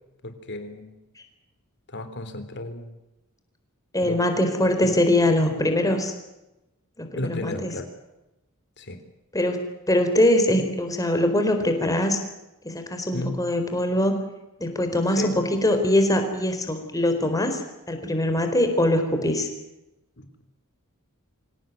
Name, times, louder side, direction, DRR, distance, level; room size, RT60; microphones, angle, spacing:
voice 1, 0.2-0.9 1.9-3.0 4.0-4.2 4.8-4.9 7.1-7.9 8.8-9.0 13.1-13.4 15.2-15.4 20.2-20.3, left 1 dB, 55° left, 9 dB, 3.6 m, -33 dB
voice 2, 3.9-6.1 7.0-7.7 9.3-9.6 9.9-12.2 12.6-14.1 14.6-19.5, left 1 dB, 15° left, 6 dB, 4.3 m, -22 dB
25.5 x 18.0 x 9.4 m, 0.97 s
head